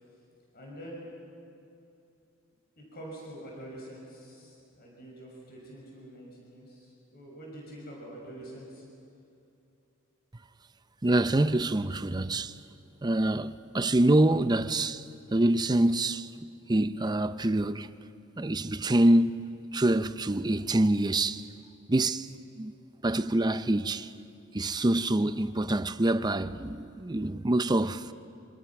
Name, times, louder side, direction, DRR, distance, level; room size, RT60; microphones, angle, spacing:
voice 1, 0.5-1.1 2.8-8.8, right 1 dB, 50° left, 6.2 m, -45 dB
voice 2, 11.0-12.5 13.0-15.0 15.3-16.3 16.7-17.9 18.4-21.5 21.9-22.3 22.6-22.7 23.0-24.1 24.5-28.1, right 1 dB, 20° right, 0.6 m, -26 dB
26.0 x 26.0 x 6.0 m
head